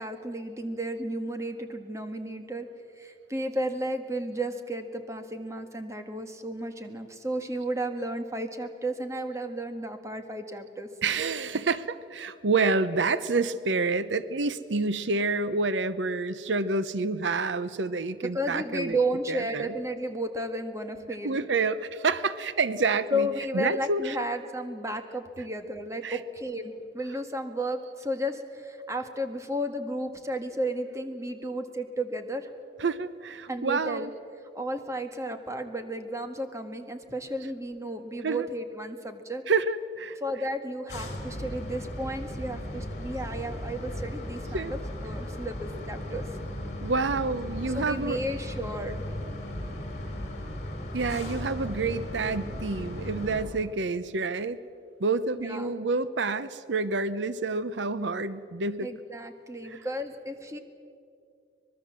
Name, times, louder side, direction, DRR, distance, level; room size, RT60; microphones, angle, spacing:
voice 1, 0.0-2.7 3.0-10.9 11.4-11.6 18.2-21.4 23.1-32.5 33.5-34.1 34.5-39.4 40.2-46.3 47.7-49.0 55.4-55.8 58.8-60.6, right 1 dB, 15° right, 7 dB, 1.6 m, -33 dB
voice 2, 11.0-19.0 19.3-19.7 21.2-23.3 23.5-24.2 26.0-26.2 32.8-34.1 38.2-38.5 39.5-40.2 44.5-44.8 46.8-48.2 50.9-54.6 55.0-58.9 59.6-59.8, right 3 dB, 85° right, 14 dB, 0.8 m, -28 dB
sound 1, 40.9-53.5, left 1 dB, 40° left, 4.3 m, -36 dB
24.5 x 21.0 x 7.5 m, 2.5 s
head